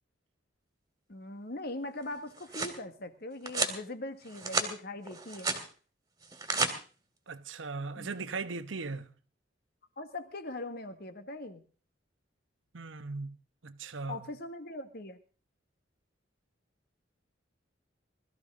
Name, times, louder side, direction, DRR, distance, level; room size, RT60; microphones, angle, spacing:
voice 1, 1.1-5.5 7.9-8.1 10.0-11.6 14.1-15.2, left 2 dB, 55° left, 1.6 m, -41 dB
sound 1, 2.1-2.8 3.5-3.8 4.2-4.7 5.1-5.6 6.2-6.7, right 3 dB, 20° right, 2.1 m, -32 dB
voice 2, 7.3-9.1 12.7-13.3 13.6-14.2, right 4 dB, 90° right, 1.1 m, -38 dB
21.0 x 13.5 x 3.7 m
head